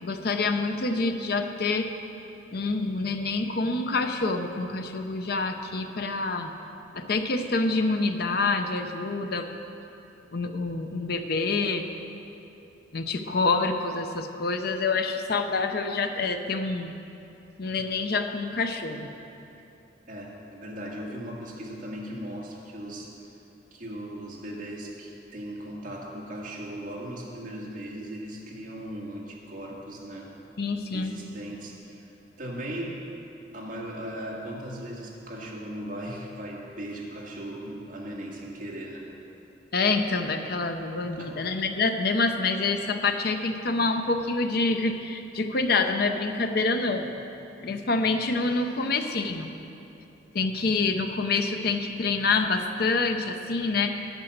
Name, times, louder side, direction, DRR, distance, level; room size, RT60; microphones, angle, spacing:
voice 1, 0.0-1.9 2.5-6.5 6.9-9.5 10.3-11.8 12.9-16.9 17.6-19.1 30.6-31.2 39.7-47.1 47.6-49.5 50.3-54.1, left 3 dB, 60° left, 6 dB, 0.7 m, -27 dB
voice 2, 20.1-23.3 23.7-30.3 30.9-32.1 32.4-33.0 33.5-39.1 41.0-41.4, right 1 dB, 50° right, -3 dB, 1.9 m, -38 dB
9.0 x 8.2 x 6.6 m, 2.9 s
head